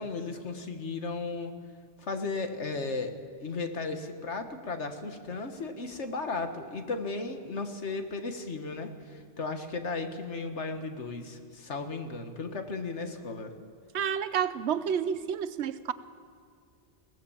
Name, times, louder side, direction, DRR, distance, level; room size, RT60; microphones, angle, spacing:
voice 1, 0.0-1.5 2.0-3.1 3.4-13.5, left 3 dB, 75° left, 7 dB, 1.8 m, -35 dB
voice 2, 13.9-15.9, right 8 dB, 70° right, 14 dB, 1.0 m, -30 dB
22.0 x 17.5 x 7.2 m, 2.3 s
omnidirectional pair, 1.2 m